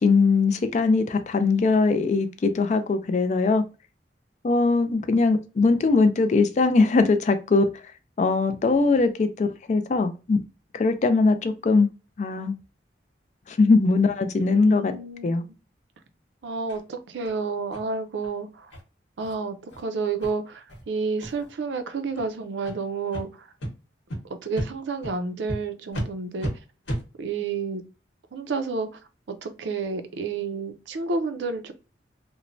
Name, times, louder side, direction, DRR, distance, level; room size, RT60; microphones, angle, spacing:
voice 1, 0.0-3.6 4.4-7.7 8.2-10.4 10.7-11.9 12.2-12.5 13.5-14.9 15.2-15.4, left 3 dB, 40° left, 0.3 m, -21 dB
voice 2, 14.5-15.4 16.4-18.7 19.2-23.3 24.4-26.5 27.2-27.8 28.3-28.9 29.4-31.7, right 4 dB, 80° right, 0.4 m, -30 dB
sound 1, 16.7-16.8 17.2-17.3 17.7-17.8 18.2-18.3 18.7-18.8 19.2-19.3 19.7-19.8 20.2-20.3 20.7-20.8 21.2-21.5 22.1-22.2 22.6-22.8 23.1-23.2 23.6-23.7 24.1-24.2 24.5-24.7 25.0-25.1 25.5-25.6 25.9-26.1 26.4-26.5 26.8-27.0, right 1 dB, 90° left, 1.0 m, -32 dB
3.0 x 2.1 x 2.5 m
head